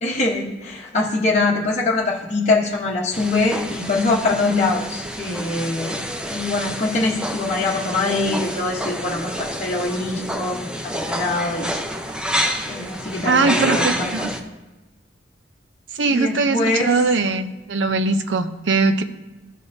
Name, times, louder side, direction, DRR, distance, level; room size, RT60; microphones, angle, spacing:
voice 1, 0.0-6.0 6.3-11.8 12.7-14.3 16.1-16.9, left 3 dB, 40° left, -5 dB, 1.1 m, -23 dB
sound 1, 3.1-14.4, equal, 5° right, 0.5 m, -28 dB
voice 2, 13.3-14.3 15.9-19.0, right 3 dB, 90° right, 9 dB, 0.6 m, -20 dB
14.0 x 5.4 x 2.7 m, 1.1 s
head